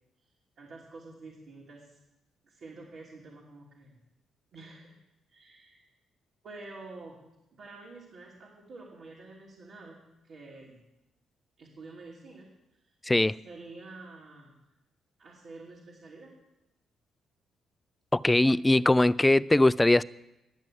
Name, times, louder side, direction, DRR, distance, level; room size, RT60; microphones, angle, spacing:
voice 1, 0.6-2.0 2.4-4.0 4.5-5.0 5.3-5.8 6.4-7.2 7.5-10.8 11.6-12.5 13.4-14.6 15.2-16.3, right 3 dB, 60° right, 2.7 m, -48 dB
voice 2, 13.0-13.3 18.1-20.0, left 2 dB, 15° left, 0.3 m, -21 dB
11.0 x 8.1 x 7.6 m
cardioid pair, 90°, 0 cm